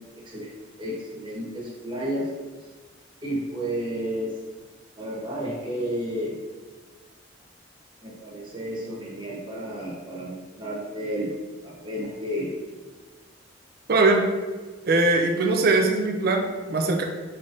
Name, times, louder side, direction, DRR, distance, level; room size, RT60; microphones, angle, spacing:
voice 1, 0.2-2.3 2.6-2.7 3.2-4.4 5.0-6.4 8.0-11.3 11.6-12.5, equal, 25° right, -6 dB, 1.2 m, -32 dB
voice 2, 13.9-14.3 14.9-17.0, right 3 dB, 50° right, 3 dB, 0.5 m, -21 dB
5.3 x 3.3 x 2.6 m, 1.4 s
head